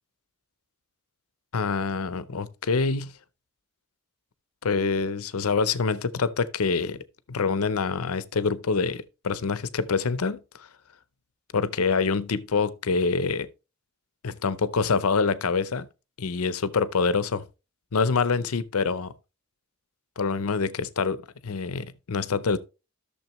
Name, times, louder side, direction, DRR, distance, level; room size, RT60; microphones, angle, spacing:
voice 1, 1.5-3.1 4.6-7.0 7.3-10.7 11.5-13.5 14.2-15.9 16.2-17.4 17.9-19.1 20.2-22.6, left 4 dB, 85° left, 0.6 m, -26 dB
12.0 x 6.8 x 3.1 m
head